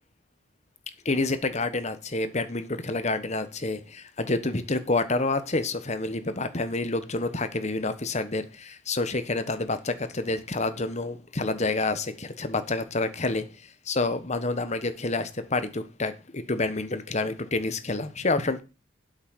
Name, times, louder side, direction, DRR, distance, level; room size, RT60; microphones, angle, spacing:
voice 1, 1.0-13.4 13.9-18.6, left 2 dB, 35° left, 1.3 m, -28 dB
8.4 x 7.6 x 7.3 m
head